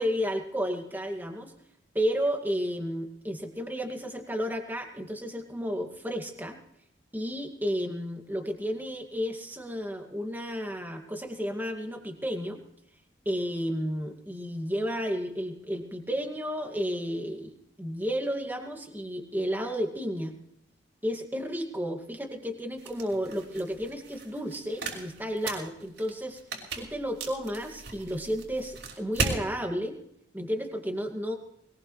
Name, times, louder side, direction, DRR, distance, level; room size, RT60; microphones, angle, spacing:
voice 1, 0.0-1.5 1.9-6.6 7.1-12.6 13.3-17.5 17.8-20.4 21.0-26.4 26.7-30.0 30.3-31.4, equal, 10° right, 3 dB, 2.2 m, -32 dB
sound 1, 22.8-29.4, right 4 dB, 70° right, 5.6 m, -37 dB
22.0 x 20.5 x 3.3 m, 0.74 s
head